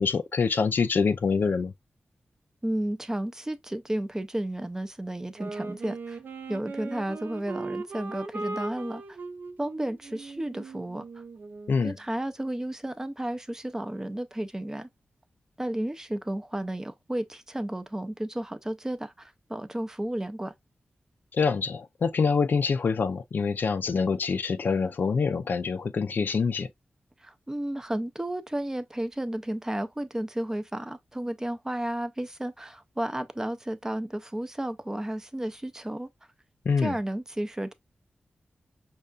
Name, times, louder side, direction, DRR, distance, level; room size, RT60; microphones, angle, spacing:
voice 1, 0.0-1.7 11.7-12.0 21.3-26.7 36.7-37.0, left 5 dB, 60° left, 0.4 m, -25 dB
voice 2, 2.6-6.2 6.5-9.2 9.6-11.0 11.8-14.9 15.6-20.5 27.2-36.1 36.8-37.7, right 1 dB, 15° right, 0.4 m, -32 dB
Wind instrument woodwind instrument, 5.4-11.9, right 3 dB, 60° right, 0.6 m, -39 dB
5.4 x 2.2 x 2.4 m
wide cardioid pair, 110°, 4 cm